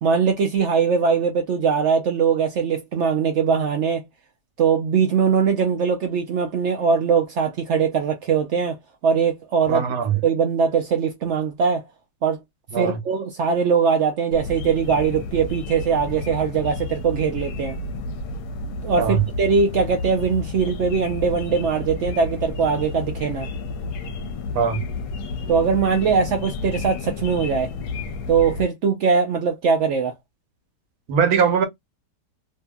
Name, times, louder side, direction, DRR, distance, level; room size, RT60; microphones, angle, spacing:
voice 1, 0.0-4.0 4.6-8.8 9.0-9.8 10.2-11.8 12.2-12.4 12.8-17.8 18.8-23.5 25.5-27.7 28.3-30.1, right 6 dB, 85° right, 0.6 m, -21 dB
voice 2, 9.7-10.2 12.7-13.0 19.0-19.2 24.5-24.8 31.1-31.6, right 7 dB, 65° right, 1.2 m, -20 dB
sound 1, 14.3-28.6, left 3 dB, 70° left, 1.0 m, -31 dB
2.7 x 2.6 x 2.2 m
omnidirectional pair, 1.8 m